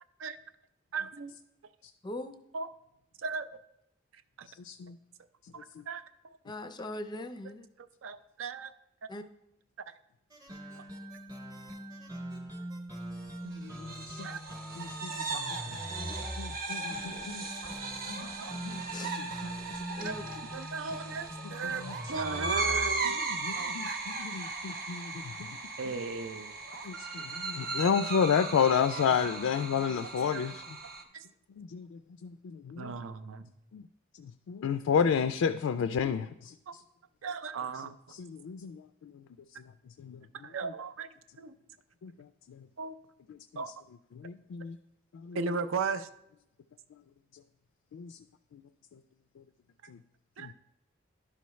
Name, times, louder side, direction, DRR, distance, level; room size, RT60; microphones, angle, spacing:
voice 1, 0.9-1.3 2.5-2.7 3.2-3.5 4.1-4.5 5.5-6.4 7.8-8.7 9.9-10.0 10.7-10.8 14.2-14.4 15.3-15.4 17.4-17.7 18.4-18.6 20.0-24.0 25.8-26.8 30.0-30.5 31.1-31.3 32.8-33.5 36.7-36.8 37.2-38.0 40.4-41.5 42.8-43.0 43.6-43.7 45.3-46.1 49.8-49.9 50.4-50.5, right 5 dB, 80° right, 10 dB, 0.5 m, -37 dB
voice 2, 2.0-2.3 6.5-7.7 9.1-9.2 18.9-19.2 19.9-20.2, left 1 dB, 20° left, 9 dB, 0.4 m, -40 dB
voice 3, 4.6-5.0 13.5-14.3 14.8-15.1 16.0-16.1 16.4-17.4 18.1-18.3 18.6-19.3 23.4-25.1 25.4-25.5 26.8-30.5 31.6-32.9 33.7-33.8 34.5-36.5 38.2-38.8 40.0-40.2 42.0-42.1 44.2-44.8 45.2-45.4 47.9-48.1 49.9-50.0 50.4-50.5, left 7 dB, 85° left, 9 dB, 0.3 m, -31 dB
sound 1, 10.3-23.1, equal, 20° right, 0.8 m, -42 dB
sound 2, 13.7-31.0, right 3 dB, 45° right, 0.8 m, -37 dB
11.0 x 5.7 x 3.1 m, 0.82 s
head